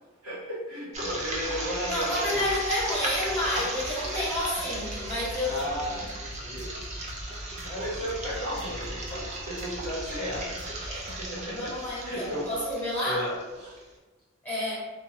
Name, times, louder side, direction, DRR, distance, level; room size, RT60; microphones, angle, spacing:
voice 1, 0.2-2.5 5.4-6.7 7.6-10.7 11.0-11.7 12.0-12.4 13.0-13.8, equal, 85° right, -9 dB, 1.2 m, -34 dB
sound 1, 0.9-13.8, right 2 dB, 35° right, 0.5 m, -36 dB
voice 2, 1.9-6.0 10.9-11.1 11.4-13.3 14.4-14.8, left 1 dB, 10° left, -9 dB, 1.2 m, -30 dB
sound 2, 3.3-11.2, left 1 dB, 50° left, 0.4 m, -46 dB
2.5 x 2.3 x 3.0 m, 1.2 s
head